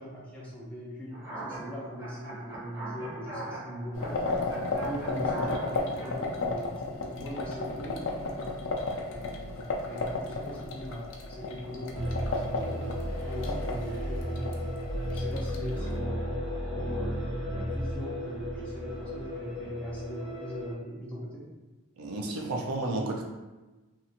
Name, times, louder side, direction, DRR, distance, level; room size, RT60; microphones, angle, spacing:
voice 1, 0.0-4.2 4.7-8.6 9.1-14.6 15.1-16.3 16.7-21.5, equal, 5° left, -8 dB, 0.6 m, -40 dB
sound 1, 1.1-6.1, right 2 dB, 15° right, 1.3 m, -41 dB
sound 2, 3.9-16.0, left 3 dB, 55° left, 0.4 m, -34 dB
sound 3, 11.9-20.7, equal, 50° right, 0.9 m, -34 dB
voice 2, 22.0-23.2, right 2 dB, 90° right, 1 dB, 0.5 m, -32 dB
2.6 x 2.4 x 2.8 m, 1.2 s
head